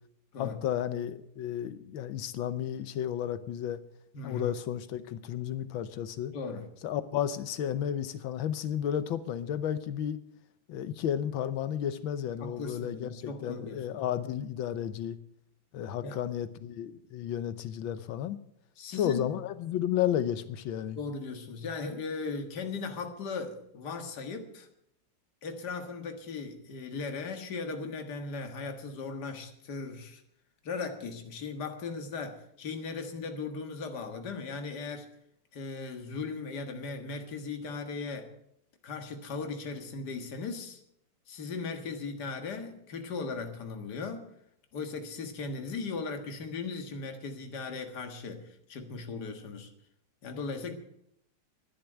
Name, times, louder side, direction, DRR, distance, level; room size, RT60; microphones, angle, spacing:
voice 1, 0.4-3.8 4.2-6.3 6.8-10.2 10.7-15.2 15.7-18.4 19.0-21.0, left 10 dB, 90° left, 14 dB, 1.6 m, -32 dB
voice 2, 4.1-4.5 6.3-6.7 12.4-14.0 16.0-16.2 18.8-19.3 20.9-24.7 25.4-30.2 30.6-35.1 35.5-38.3 38.8-40.8 41.3-44.3 44.7-49.7 50.2-50.7, left 4 dB, 60° left, 6 dB, 2.2 m, -38 dB
11.5 x 10.5 x 8.9 m, 0.76 s
omnidirectional pair, 2.1 m